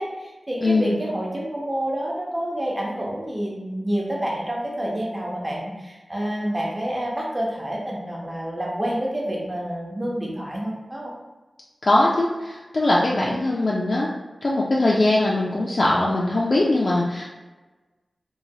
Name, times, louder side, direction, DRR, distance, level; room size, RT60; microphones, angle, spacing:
voice 1, 0.0-11.1 13.1-13.4, right 1 dB, 20° right, -3 dB, 0.7 m, -28 dB
voice 2, 0.6-1.0 11.8-14.1 14.4-17.2, left 2 dB, 45° left, -4 dB, 0.3 m, -21 dB
3.1 x 2.2 x 2.7 m, 1.2 s
wide cardioid pair, 85°, 0 cm